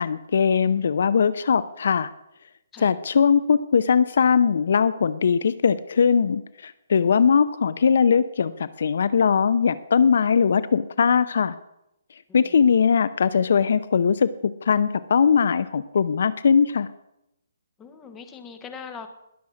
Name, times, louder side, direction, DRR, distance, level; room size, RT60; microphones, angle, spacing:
voice 1, 0.0-2.1 2.8-11.5 12.3-16.9, left 6 dB, 65° left, 16 dB, 0.6 m, -20 dB
voice 2, 12.3-12.8 17.8-19.1, left 6 dB, 10° left, 7 dB, 1.2 m, -41 dB
20.5 x 7.0 x 6.4 m, 0.85 s
hypercardioid pair, 165°, 0 cm